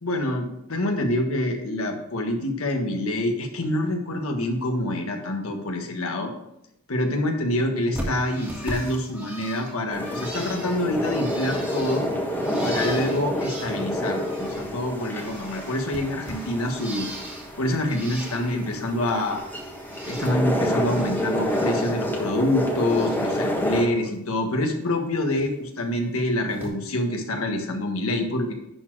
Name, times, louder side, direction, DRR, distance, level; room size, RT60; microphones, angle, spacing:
voice 1, 0.0-6.3 6.9-12.1 12.6-17.1 17.6-19.4 20.1-28.5, left 1 dB, 75° left, 3 dB, 1.4 m, -26 dB
Bird, 7.9-14.7 15.0-17.5 17.8-18.7 19.0-20.4 20.7-21.9 22.2-23.3 23.7-24.1 25.4-25.5 26.5-26.7, right 1 dB, 10° right, 2.0 m, -39 dB
sound 1, 9.9-23.8, equal, 10° left, 1.4 m, -28 dB
10.5 x 4.3 x 4.6 m, 0.80 s
head